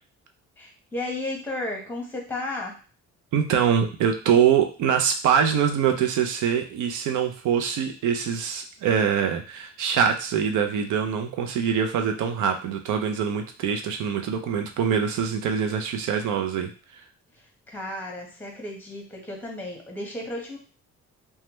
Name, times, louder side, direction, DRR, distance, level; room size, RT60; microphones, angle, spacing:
voice 1, 0.6-2.8 17.4-20.6, left 2 dB, 5° left, 1 dB, 1.0 m, -34 dB
voice 2, 3.3-16.7, right 7 dB, 80° right, 5 dB, 0.6 m, -24 dB
3.1 x 2.2 x 3.0 m, 0.36 s
cardioid pair, 90°, 30 cm